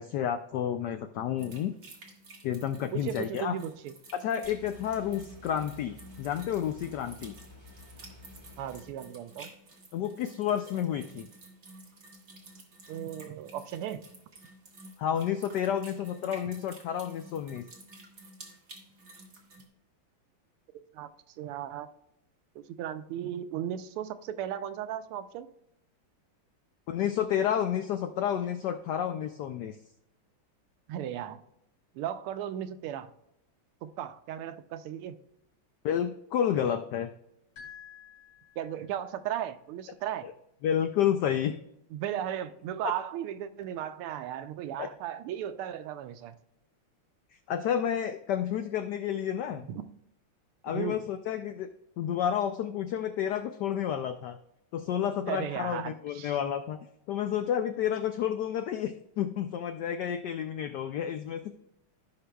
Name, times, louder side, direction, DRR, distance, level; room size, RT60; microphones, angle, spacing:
voice 1, 0.0-1.7 2.4-3.6 4.1-7.3 9.9-11.3 15.0-17.6 26.9-29.8 35.8-37.1 40.2-40.3 40.6-41.5 42.8-42.9 44.8-44.9 47.5-49.7 50.6-51.7 52.0-54.4 54.7-56.8 57.1-61.5, left 9 dB, 85° left, 8 dB, 0.9 m, -30 dB
sound 1, 1.4-19.6, right 2 dB, 40° right, 1.8 m, -52 dB
voice 2, 2.9-3.9 8.6-9.5 12.9-14.0 20.9-21.1 21.4-21.9 22.5-25.5 30.9-31.4 31.9-33.1 33.8-35.2 38.6-40.3 41.9-46.4 49.5-49.8 50.7-51.0 55.3-56.4, right 10 dB, 85° right, 11 dB, 1.5 m, -36 dB
sound 2, 4.4-8.8, left 2 dB, 15° right, 1.5 m, -52 dB
sound 3, 37.6-39.1, left 8 dB, 60° left, 4.3 m, -50 dB
16.0 x 5.7 x 2.3 m, 0.81 s
omnidirectional pair, 2.4 m